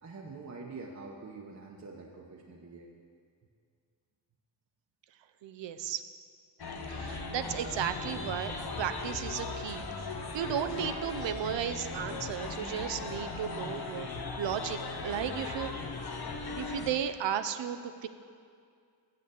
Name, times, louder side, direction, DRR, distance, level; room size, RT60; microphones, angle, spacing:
voice 1, 0.0-2.9, right 3 dB, 40° right, -1 dB, 0.9 m, -45 dB
voice 2, 5.4-6.0 6.9-9.8 10.3-14.1 14.4-15.7 16.1-16.2 16.6-18.1, right 9 dB, 85° right, 10 dB, 0.6 m, -34 dB
sound 1, 6.6-16.9, left 3 dB, 60° left, 1.0 m, -38 dB
7.4 x 6.7 x 6.9 m, 2.2 s
cardioid pair, 60°, 43 cm